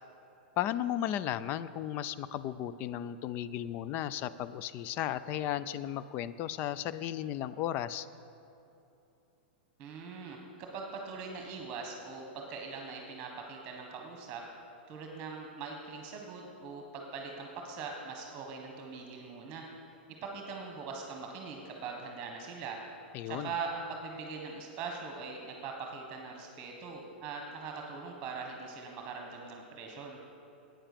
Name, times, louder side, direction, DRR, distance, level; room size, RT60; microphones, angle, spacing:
voice 1, 0.6-8.1 23.1-23.5, left 11 dB, 40° left, 15 dB, 0.3 m, -35 dB
voice 2, 9.8-14.4 14.9-19.7 20.2-22.8 23.2-30.2, right 4 dB, 30° right, 1 dB, 1.4 m, -41 dB
8.8 x 8.8 x 6.8 m, 2.9 s
hypercardioid pair, 125°, 6 cm